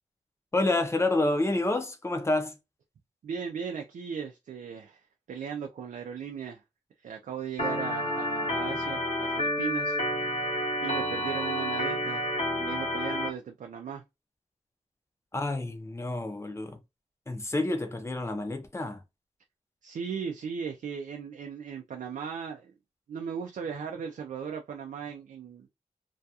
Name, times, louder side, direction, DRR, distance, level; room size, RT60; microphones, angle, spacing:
voice 1, 0.5-2.6 15.3-16.8 17.3-19.0, left 2 dB, 20° left, 0.6 m, -28 dB
voice 2, 3.2-6.6 7.0-10.0 10.3-10.5 10.8-12.3 12.6-14.0 19.8-22.7 23.1-25.7, right 7 dB, 85° right, 0.4 m, -37 dB
Organ, 7.6-13.3, equal, 60° left, 0.9 m, -30 dB
2.3 x 2.3 x 2.7 m
wide cardioid pair, 105°, 13 cm